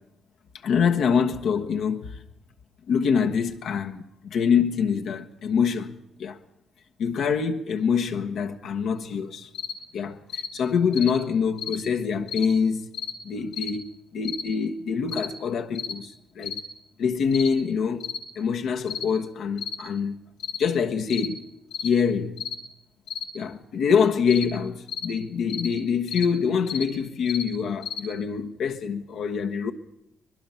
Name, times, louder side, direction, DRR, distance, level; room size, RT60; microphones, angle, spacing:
voice 1, 0.6-2.2 2.9-6.4 7.0-9.5 9.9-12.9 13.2-16.6 17.0-18.1 18.4-20.2 20.6-21.4 21.8-22.5 23.3-29.7, left 6 dB, 70° left, 1.2 m, -25 dB
sound 1, 9.5-9.8 10.3-10.5 10.9-11.1 11.6-11.8 12.3-12.5 12.9-13.2 13.5-13.7 14.2-14.5 15.1-15.3 15.7-16.0 16.4-16.6 17.3-17.5 18.0-18.2 18.9-19.1 19.6-19.8 20.4-20.6 21.1-21.3 21.7-21.9 22.4-22.6 23.1-23.3 24.3-24.5 24.9-25.1 25.5-25.7 26.1-26.3 26.7-26.9 27.3-27.5 27.8-28.0, left 7 dB, 90° left, 2.2 m, -33 dB
23.5 x 21.0 x 5.7 m
cardioid pair, 90°, 0 cm